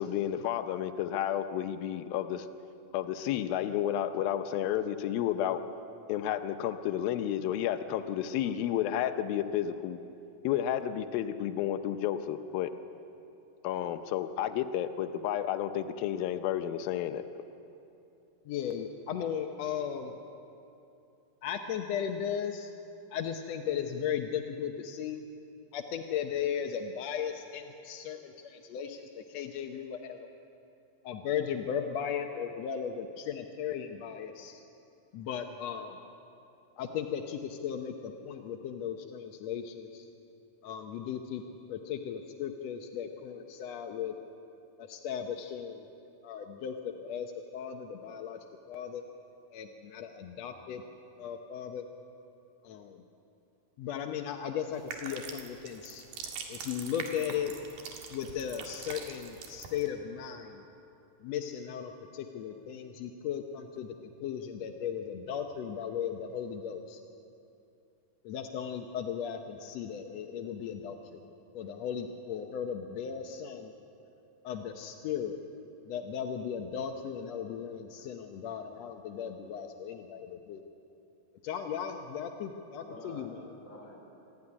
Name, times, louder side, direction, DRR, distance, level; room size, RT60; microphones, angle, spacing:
voice 1, 0.0-2.5 2.9-5.6 6.1-10.0 10.4-12.7 13.6-17.2, left 11 dB, 90° left, 9 dB, 2.6 m, -31 dB
voice 2, 18.5-20.1 21.4-22.7 23.1-25.2 25.7-30.3 31.0-34.6 35.1-36.0 36.8-40.0 40.6-41.4 41.7-44.1 44.8-45.9 46.2-48.4 48.7-49.0 49.5-50.8 51.2-51.9 52.6-53.0 53.8-56.0 56.5-57.5 58.1-60.6 61.2-67.0 68.2-71.2 71.5-73.7 74.4-75.4 75.9-80.6 81.4-83.4, left 8 dB, 70° left, 4 dB, 1.6 m, -36 dB
sound 1, 54.7-59.9, right 6 dB, 80° right, 3.7 m, -43 dB
voice 3, 82.6-84.0, equal, 20° left, -2 dB, 4.9 m, -49 dB
26.5 x 12.5 x 9.8 m, 2.8 s
omnidirectional pair, 4.1 m